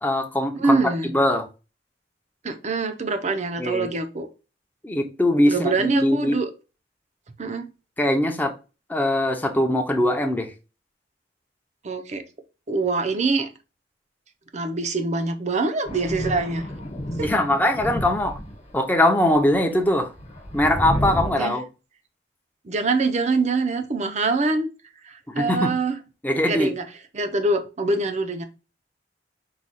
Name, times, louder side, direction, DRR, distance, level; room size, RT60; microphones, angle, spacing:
voice 1, 0.0-0.8 1.1-1.4 3.6-3.9 4.8-6.4 8.0-8.5 8.9-10.5 17.2-18.4 18.7-20.1 20.5-21.7 25.3-25.7 26.2-26.7, left 1 dB, 10° left, 0.6 m, -21 dB
voice 2, 0.5-1.1 2.4-4.3 5.4-6.5 7.4-7.7 11.8-12.2 12.7-13.5 14.5-16.7 17.2-17.3 21.4-21.5 22.6-24.7 25.0-26.0 26.4-26.8 27.1-28.4, right 3 dB, 40° right, 0.6 m, -24 dB
Thunder, 15.8-18.8 19.3-21.3, equal, 40° left, 1.1 m, -31 dB
4.8 x 2.3 x 4.1 m
head